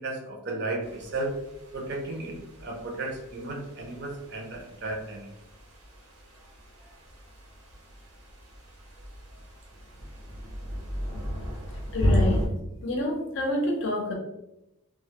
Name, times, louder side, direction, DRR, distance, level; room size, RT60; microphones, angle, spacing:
voice 1, 0.0-1.3 1.7-2.3 2.6-5.3, right 2 dB, 50° right, 0 dB, 0.5 m, -34 dB
sound 1, 0.8-12.5, equal, 85° right, 0.8 m, -34 dB
voice 2, 11.9-12.4 12.8-14.1, left 1 dB, 55° left, 0 dB, 0.5 m, -28 dB
2.2 x 2.0 x 2.8 m, 0.89 s
head